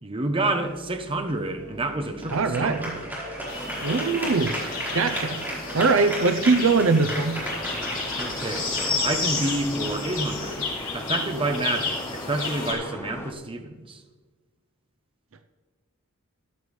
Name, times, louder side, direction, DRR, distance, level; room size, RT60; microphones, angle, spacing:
voice 1, 0.0-3.1 8.2-10.6 10.9-14.0, right 2 dB, 25° right, 6 dB, 0.9 m, -29 dB
sound 1, 0.6-10.7, equal, 10° right, 4.3 m, -36 dB
voice 2, 2.3-2.8 3.8-4.5 4.9-5.4 5.7-7.3, right 4 dB, 65° right, 9 dB, 0.6 m, -21 dB
sound 2, 3.5-12.7, left 4 dB, 40° left, 4.1 m, -32 dB
sound 3, 7.3-13.3, left 1 dB, 10° left, 0.7 m, -38 dB
13.5 x 11.0 x 3.3 m, 1.3 s
head